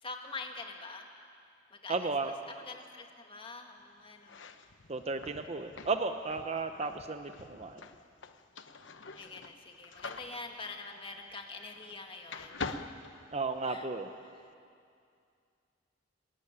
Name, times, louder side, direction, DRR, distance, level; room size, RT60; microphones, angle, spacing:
voice 1, 0.0-1.1 1.7-4.5 9.2-12.9 13.6-13.9 14.2-14.5, left 3 dB, 30° left, 3 dB, 1.9 m, -45 dB
voice 2, 1.9-2.3 4.9-7.8 13.3-14.1, right 3 dB, 35° right, 7 dB, 0.8 m, -34 dB
sound 1, 4.2-12.0 12.3-13.9, left 3 dB, 70° left, 1.0 m, -45 dB
25.5 x 12.5 x 9.8 m, 2.4 s
head